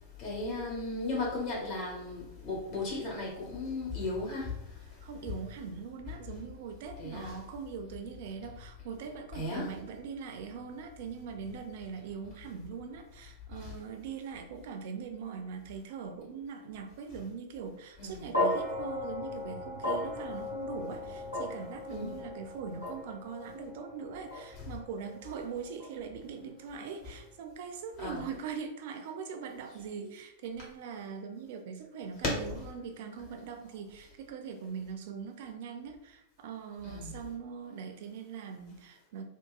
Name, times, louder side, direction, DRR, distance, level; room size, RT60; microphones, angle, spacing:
voice 1, 0.2-4.6 7.0-7.3 9.3-9.7 13.6-13.7 18.0-18.3 21.9-22.2 28.0-28.2 36.8-37.2, left 2 dB, 45° left, -5 dB, 1.3 m, -36 dB
voice 2, 5.0-39.2, right 6 dB, 50° right, 6 dB, 0.3 m, -41 dB
sound 1, 18.3-26.7, left 2 dB, 85° left, 1.3 m, -36 dB
2.8 x 2.2 x 2.3 m, 0.83 s
figure-of-eight pair, 90°, 0 cm